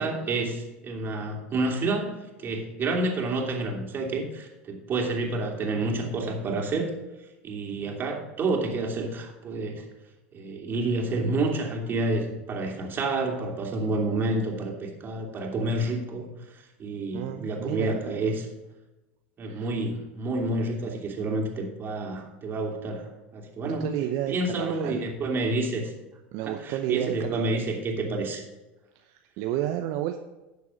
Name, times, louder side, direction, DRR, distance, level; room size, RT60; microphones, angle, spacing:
voice 1, 0.0-6.9 7.4-9.8 10.3-18.4 19.4-23.9 24.3-25.9 26.5-28.4, right 2 dB, 35° right, 1 dB, 2.9 m, -29 dB
voice 2, 17.1-18.0 19.4-19.7 23.6-25.1 26.3-27.6 28.9-30.2, right 12 dB, 60° right, 6 dB, 0.7 m, -31 dB
11.0 x 7.0 x 5.1 m, 1.0 s
hypercardioid pair, 90°, 6 cm